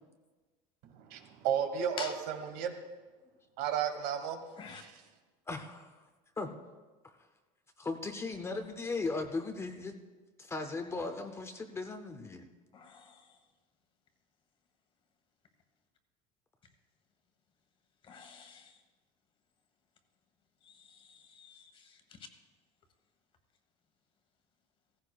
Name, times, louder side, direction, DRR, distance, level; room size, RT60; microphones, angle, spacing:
voice 1, 1.1-2.8 3.6-4.4 4.7-5.0, right 8 dB, 70° right, 6 dB, 1.4 m, -33 dB
voice 2, 5.5-6.0 6.4-6.6 7.0-7.1 7.8-10.0 10.4-12.4, left 3 dB, 15° left, 6 dB, 0.6 m, -37 dB
voice 3, 12.7-13.3 18.0-18.8 20.6-22.0, left 5 dB, 35° left, 7 dB, 1.3 m, -47 dB
16.0 x 15.0 x 2.3 m, 1.3 s
cardioid pair, 145°, 16 cm